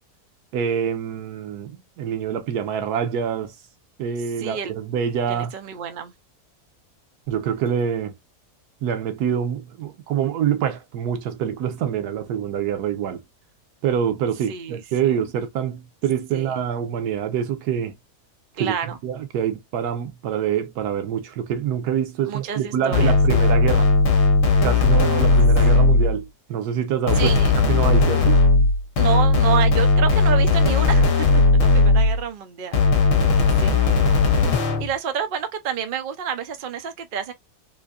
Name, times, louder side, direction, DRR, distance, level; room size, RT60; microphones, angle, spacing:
voice 1, 0.5-3.5 4.0-5.5 7.3-8.1 8.8-13.2 13.8-18.0 18.6-18.7 19.0-23.9 24.6-27.4 27.7-28.4, right 8 dB, 90° right, 1.3 m, -25 dB
voice 2, 4.4-4.7 5.3-6.1 14.5-15.2 16.3-16.6 18.6-19.0 22.3-23.2 27.2-27.5 29.0-32.8 33.6-34.1 34.8-37.3, right 8 dB, 55° right, 0.6 m, -29 dB
sound 1, 22.9-26.2 27.1-32.2 32.7-34.9, left 3 dB, 60° left, 1.2 m, -17 dB
3.8 x 2.6 x 2.4 m
omnidirectional pair, 1.6 m